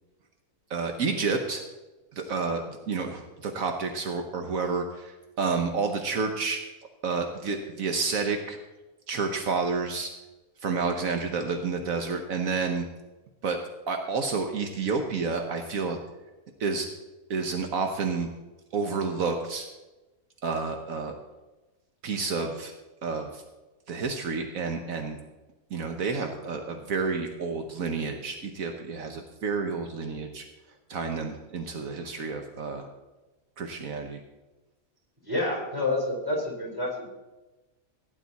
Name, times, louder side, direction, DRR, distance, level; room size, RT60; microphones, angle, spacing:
voice 1, 0.7-1.6 2.1-6.6 7.0-8.6 9.1-10.1 10.6-12.9 13.4-13.6 13.9-16.0 16.6-16.9 17.3-18.3 18.7-19.7 20.4-21.1 22.0-22.7 23.0-23.4 23.9-25.2 25.7-30.4 30.9-32.9 33.6-34.2, right 4 dB, 75° right, 5 dB, 1.4 m, -30 dB
voice 2, 35.2-37.1, left 2 dB, 15° right, -1 dB, 4.2 m, -28 dB
16.5 x 9.8 x 4.1 m, 1.1 s
omnidirectional pair, 1.5 m